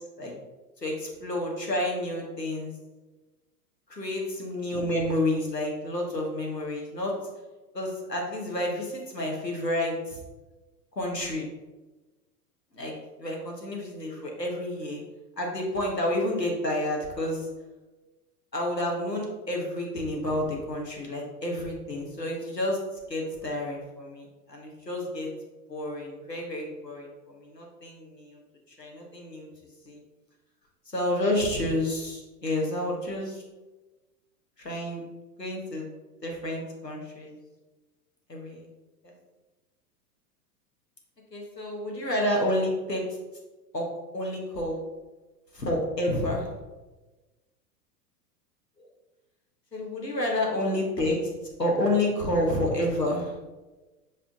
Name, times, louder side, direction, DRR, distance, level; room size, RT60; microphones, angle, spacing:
voice 1, 0.8-2.7 3.9-7.1 7.7-10.2 10.9-11.5 12.7-12.9 13.2-15.0 15.4-17.5 18.5-22.8 23.1-25.3 25.7-28.4 28.8-29.5 29.8-30.0 30.9-33.4 34.6-35.0 35.4-35.9 36.2-37.4 38.3-38.6 39.0-39.1 41.3-43.0 43.7-43.9 44.1-44.8 45.5-46.5 48.8-48.9 49.7-51.2 51.6-53.3, left 1 dB, 90° left, -1 dB, 1.5 m, -29 dB
5.3 x 5.3 x 3.6 m, 1.2 s
figure-of-eight pair, 95°, 48 cm